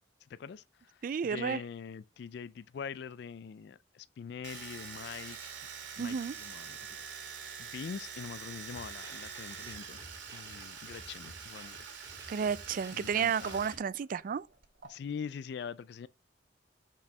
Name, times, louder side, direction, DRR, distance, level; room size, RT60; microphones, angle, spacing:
voice 1, 0.3-5.5 6.0-10.0 10.3-11.8 12.9-13.6 14.8-16.1, left 6 dB, 60° left, 0.3 m, -44 dB
voice 2, 1.0-1.6 6.0-6.4 12.3-14.5, right 7 dB, 45° right, 0.3 m, -32 dB
Domestic sounds home sounds, 4.4-13.8 14.0-14.9, right 6 dB, 80° right, 2.4 m, -45 dB
sound 1, 8.7-13.8, right 1 dB, 20° right, 1.8 m, -53 dB
5.4 x 5.3 x 4.8 m
head